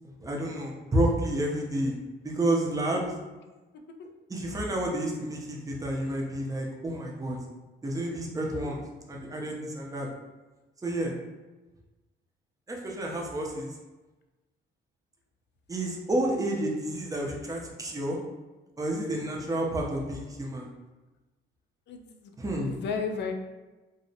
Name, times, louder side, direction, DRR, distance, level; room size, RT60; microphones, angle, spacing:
voice 1, 0.0-3.1 4.3-7.4 7.8-8.8 9.1-10.1 10.8-11.1 12.7-13.8 15.7-18.2 18.8-20.7 22.4-22.8, right 1 dB, 15° right, -1 dB, 0.5 m, -30 dB
voice 2, 21.9-22.3 22.6-23.3, left 5 dB, 60° left, 4 dB, 0.4 m, -34 dB
2.7 x 2.0 x 2.7 m, 1.1 s
cardioid pair, 90°, 20 cm